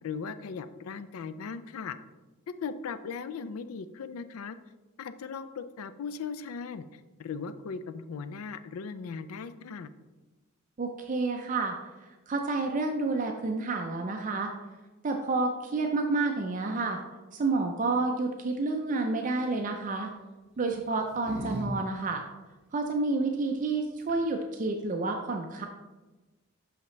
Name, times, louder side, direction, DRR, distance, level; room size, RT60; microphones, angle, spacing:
voice 1, 0.0-2.0 2.6-4.6 5.0-9.9, left 5 dB, 85° left, 12 dB, 0.4 m, -38 dB
voice 2, 10.8-11.7 12.3-14.5 15.0-17.0 17.3-20.1 20.6-22.2 22.7-25.7, right 3 dB, 35° right, 3 dB, 0.4 m, -29 dB
sound 1, 19.2-19.6 20.6-21.7 21.9-22.0 23.7-23.8 24.0-24.4, right 1 dB, 5° right, 1.6 m, -40 dB
5.8 x 5.7 x 3.1 m, 1.2 s
head